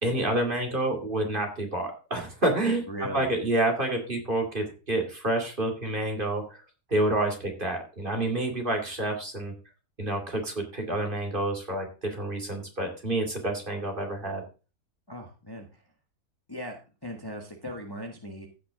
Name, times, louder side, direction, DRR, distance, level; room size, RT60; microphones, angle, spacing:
voice 1, 0.0-6.6 6.9-9.5 10.0-14.4, right 1 dB, 35° right, 3 dB, 2.6 m, -28 dB
voice 2, 2.9-3.3 15.1-15.8 16.5-18.5, equal, 15° left, 2 dB, 1.4 m, -38 dB
15.5 x 6.1 x 3.7 m, 0.33 s
omnidirectional pair, 1.5 m